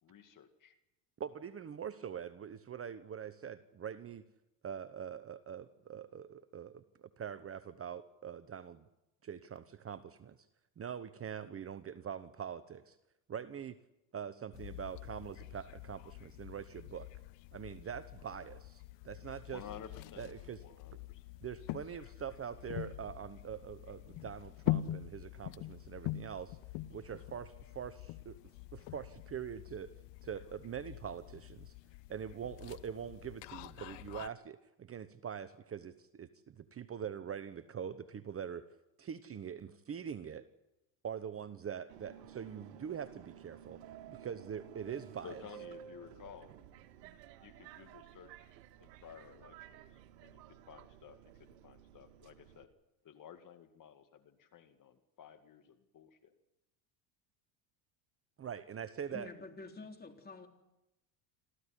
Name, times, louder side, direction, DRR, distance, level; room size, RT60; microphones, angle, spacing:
voice 1, 0.0-0.7 19.5-20.3 20.5-21.2 45.2-46.5 47.4-48.5 48.8-52.7 53.0-56.3, left 8 dB, 40° left, 9 dB, 2.1 m, -54 dB
voice 2, 1.2-4.2 4.6-8.8 9.2-10.4 10.8-13.0 13.3-13.8 14.1-17.1 17.5-19.6 20.2-20.6 21.4-26.6 26.9-28.4 28.7-29.9 30.2-31.7 32.1-38.6 39.0-40.4 41.0-43.8 44.1-45.4 58.4-59.3, right 8 dB, 25° right, 13 dB, 1.0 m, -43 dB
sound 1, 14.5-34.3, left 15 dB, 60° left, 1.1 m, -44 dB
Subway metro underground, 41.9-52.6, right 10 dB, 80° right, 1.8 m, -54 dB
voice 3, 59.1-60.5, left 3 dB, 20° left, 4 dB, 3.7 m, -48 dB
27.5 x 14.5 x 9.9 m, 0.94 s
supercardioid pair, 95°, 49 cm